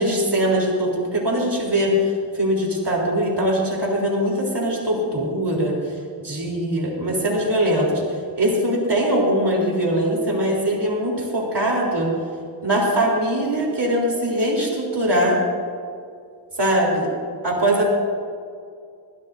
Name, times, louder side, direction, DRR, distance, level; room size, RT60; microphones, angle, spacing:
voice 1, 0.0-5.7 6.2-8.0 8.4-12.1 12.6-15.4 16.6-17.1 17.4-17.9, equal, 70° right, -2 dB, 3.8 m, -21 dB
21.5 x 15.5 x 2.7 m, 2.3 s
wide cardioid pair, 65°, 43 cm